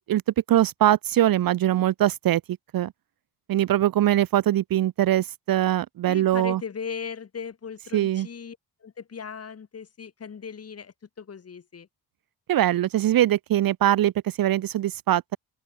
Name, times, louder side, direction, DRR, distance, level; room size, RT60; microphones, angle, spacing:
voice 1, 0.5-2.4 2.7-2.9 3.5-6.6 7.9-8.3 12.5-14.1 14.4-15.4, right 13 dB, 60° right, 0.7 m, -22 dB
voice 2, 6.1-11.9, left 6 dB, 35° left, 5.1 m, -38 dB
open air
wide cardioid pair, 170°, 40 cm